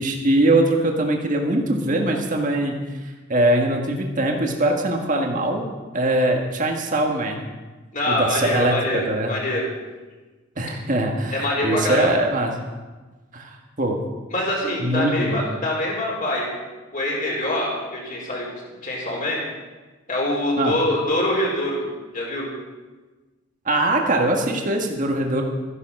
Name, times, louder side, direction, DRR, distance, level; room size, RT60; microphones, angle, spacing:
voice 1, 0.0-2.8 3.3-5.6 5.9-7.4 8.1-9.3 10.6-12.5 13.3-14.0 14.8-15.4 20.6-20.7 23.6-25.4, right 1 dB, 40° right, 2 dB, 1.6 m, -22 dB
voice 2, 7.9-9.7 11.3-12.2 14.3-16.6 16.9-18.5 18.8-19.4 20.1-21.8 22.1-22.5, left 1 dB, 40° left, -3 dB, 4.2 m, -24 dB
13.5 x 11.5 x 6.0 m, 1.3 s
head